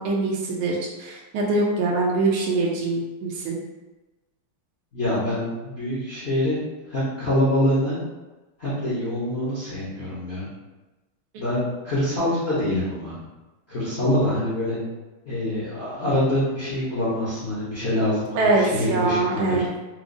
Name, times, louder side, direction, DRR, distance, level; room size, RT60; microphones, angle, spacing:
voice 1, 0.0-3.6 11.3-11.4 18.3-19.7, right 3 dB, 80° right, -2 dB, 1.5 m, -23 dB
voice 2, 4.9-8.0 8.6-10.5 11.4-13.2 13.7-14.8 15.2-19.6, left 1 dB, 50° left, -11 dB, 0.8 m, -25 dB
4.8 x 2.0 x 2.5 m, 1.1 s
omnidirectional pair, 2.4 m